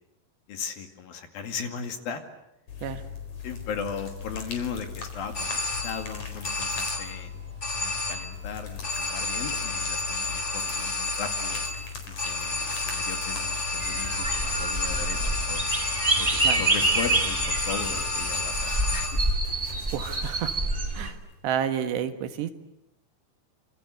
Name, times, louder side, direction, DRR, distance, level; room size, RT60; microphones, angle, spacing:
voice 1, 0.5-2.2 3.4-7.4 7.8-11.6 12.1-15.6 16.2-19.2, left 6 dB, 60° left, 7 dB, 3.9 m, -37 dB
sound 1, 2.7-21.6, left 6 dB, 40° left, 5.4 m, -39 dB
sound 2, 5.3-6.2 6.4-7.3 7.6-8.4 8.8-19.4, left 2 dB, 20° left, 2.6 m, -31 dB
sound 3, 13.8-21.1, right 2 dB, 20° right, 1.5 m, -27 dB
voice 2, 19.9-20.6 20.9-21.2 21.4-22.5, right 9 dB, 80° right, 9 dB, 3.8 m, -30 dB
27.5 x 27.0 x 8.1 m, 0.83 s
omnidirectional pair, 4.9 m